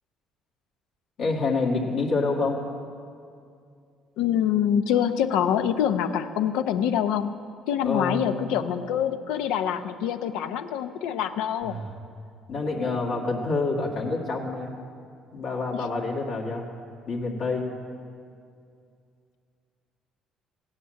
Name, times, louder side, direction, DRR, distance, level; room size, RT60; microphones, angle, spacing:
voice 1, 1.2-2.6 7.8-8.5 11.6-11.9 12.5-14.7 15.3-16.6 17.1-17.7, left 3 dB, 70° left, -4 dB, 2.1 m, -27 dB
voice 2, 4.2-7.3 7.7-11.8 15.7-15.8, left 9 dB, 85° left, 9 dB, 0.7 m, -25 dB
16.0 x 9.8 x 7.7 m, 2.4 s
cardioid pair, 90°, 0 cm